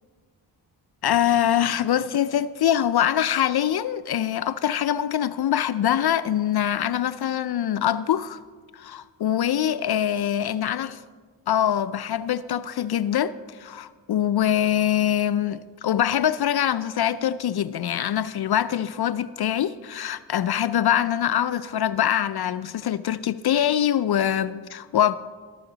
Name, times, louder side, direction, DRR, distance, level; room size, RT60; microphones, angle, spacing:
voice 1, 1.0-8.4 8.7-10.9 11.5-25.2, left 10 dB, 60° left, 0.5 m, -24 dB
19.0 x 7.2 x 3.9 m
cardioid pair, 40°, 45 cm